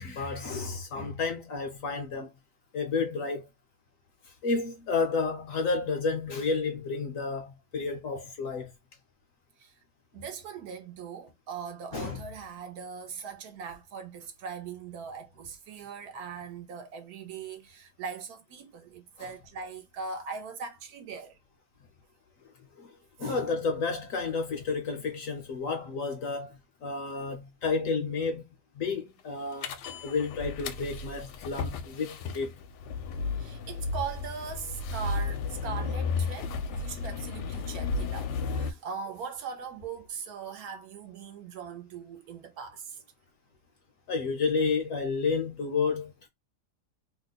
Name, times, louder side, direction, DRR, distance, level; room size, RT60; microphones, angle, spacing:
voice 1, 0.0-2.3 2.7-3.5 4.4-8.7 11.9-12.2 19.2-19.3 22.8-22.9 23.2-28.4 28.8-32.5 44.1-46.3, left 4 dB, 60° left, 0.9 m, -31 dB
voice 2, 10.1-21.4 23.2-23.4 33.4-43.0, right 6 dB, 70° right, 1.0 m, -40 dB
sound 1, 29.6-38.7, left 4 dB, 80° left, 1.2 m, -33 dB
3.0 x 2.1 x 3.9 m
omnidirectional pair, 1.8 m